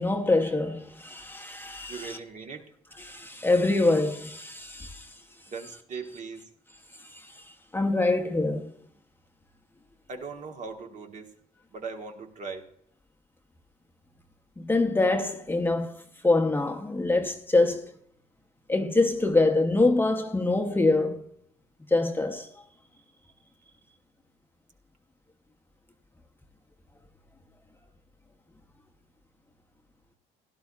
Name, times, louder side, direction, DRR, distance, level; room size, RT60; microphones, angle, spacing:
voice 1, 0.0-2.2 3.0-5.1 7.1-7.3 7.7-8.7 14.6-17.9 18.7-21.2 21.9-22.5, left 2 dB, 10° left, 0.8 m, -25 dB
voice 2, 1.9-2.7 5.5-6.5 10.1-11.3 11.7-12.7, right 4 dB, 45° right, 1.4 m, -39 dB
16.5 x 11.5 x 2.4 m
cardioid pair, 110°, 17 cm